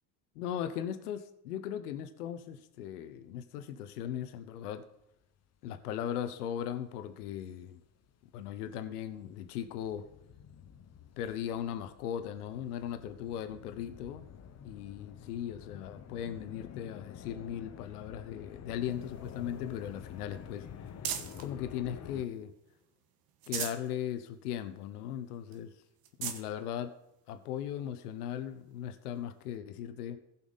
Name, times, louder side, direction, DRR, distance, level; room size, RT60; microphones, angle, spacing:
voice 1, 0.3-4.9 5.6-7.8 8.3-10.1 11.2-14.3 14.6-20.7 21.4-22.5 23.5-25.7 26.2-26.9 27.3-30.2, left 10 dB, 85° left, 1.0 m, -38 dB
sound 1, 5.7-5.9 6.5-22.2, left 8 dB, 35° left, 1.0 m, -49 dB
sound 2, 18.9-21.5 22.0-22.8 23.2-23.9 24.4-24.5 24.8-24.9 25.5-25.6 26.0-26.5 27.3-27.4 29.2-29.3, right 9 dB, 50° right, 1.3 m, -41 dB
15.5 x 5.8 x 4.1 m
hypercardioid pair, 90°, 45 cm